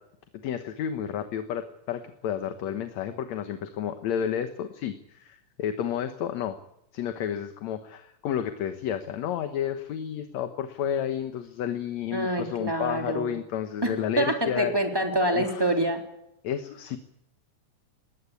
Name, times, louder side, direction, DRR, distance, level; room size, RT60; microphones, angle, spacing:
voice 1, 0.4-6.6 6.9-14.7 15.3-15.7 16.4-17.0, left 9 dB, 65° left, 8 dB, 2.3 m, -31 dB
voice 2, 12.1-13.3 13.8-16.0, right 1 dB, 5° right, 4 dB, 3.3 m, -26 dB
20.0 x 17.5 x 9.7 m, 0.81 s
omnidirectional pair, 3.7 m